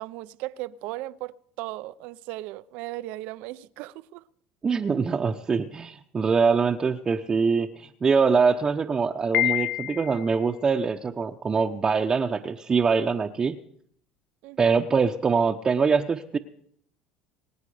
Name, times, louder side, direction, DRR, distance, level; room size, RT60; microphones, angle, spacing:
voice 1, 0.0-1.3 1.6-4.2 14.4-14.8, right 17 dB, 70° right, 0.6 m, -36 dB
voice 2, 4.6-13.6 14.6-16.4, right 5 dB, 30° right, 0.9 m, -23 dB
Piano, 9.3-10.4, left 16 dB, 60° left, 0.5 m, -26 dB
23.5 x 8.8 x 5.0 m
supercardioid pair, 90°, 3 cm